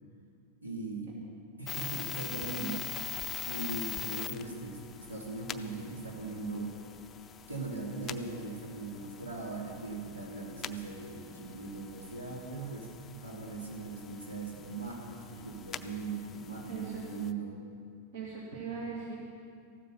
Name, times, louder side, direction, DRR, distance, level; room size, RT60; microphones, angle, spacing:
voice 1, 0.6-1.2 1.6-2.9 3.5-6.7 7.5-12.9 13.2-17.6, right 3 dB, 75° right, -1 dB, 2.6 m, -39 dB
sound 1, 1.7-17.3, left 9 dB, 25° left, 0.5 m, -44 dB
voice 2, 16.7-17.0 18.1-19.2, right 5 dB, 55° right, -2 dB, 2.1 m, -39 dB
15.0 x 13.0 x 5.6 m, 2.4 s
figure-of-eight pair, 90°, 0 cm